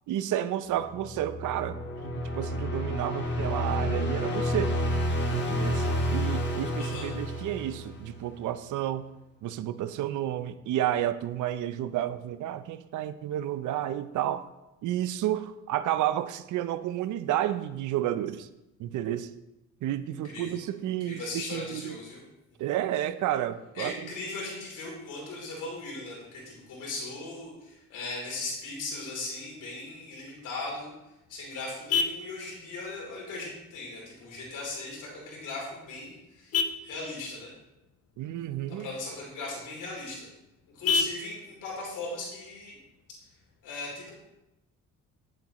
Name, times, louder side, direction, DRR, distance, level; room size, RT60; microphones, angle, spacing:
voice 1, 0.1-1.8 2.0-4.8 5.3-9.1 9.4-14.5 14.8-18.5 18.8-19.3 19.8-22.0 22.6-24.1 38.2-38.9, right 12 dB, 80° right, 13 dB, 0.6 m, -31 dB
sound 1, 0.8-8.2, equal, 35° left, 1.7 m, -30 dB
voice 2, 6.8-7.1 20.2-20.6 21.0-22.2 23.7-30.9 31.3-37.5 38.7-40.3 40.7-42.7 43.6-44.1, left 2 dB, 85° left, -2 dB, 3.1 m, -38 dB
Vehicle horn car horn honking, 30.6-43.6, left 5 dB, 55° left, 0.7 m, -36 dB
9.7 x 7.4 x 3.0 m, 0.94 s
cardioid pair, 90°, 30 cm